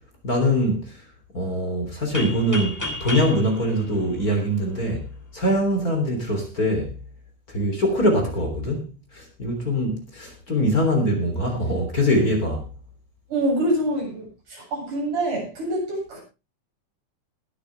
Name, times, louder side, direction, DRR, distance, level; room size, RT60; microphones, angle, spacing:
voice 1, 0.2-1.0 1.3-5.1 5.3-7.0 7.5-8.8 9.1-12.7, equal, 30° left, 3 dB, 3.7 m, -23 dB
sound 1, 2.1-4.9, left 1 dB, 5° left, 2.0 m, -33 dB
voice 2, 13.3-16.2, right 1 dB, 85° right, -2 dB, 9.3 m, -26 dB
20.5 x 9.3 x 3.4 m, 0.29 s
omnidirectional pair, 3.5 m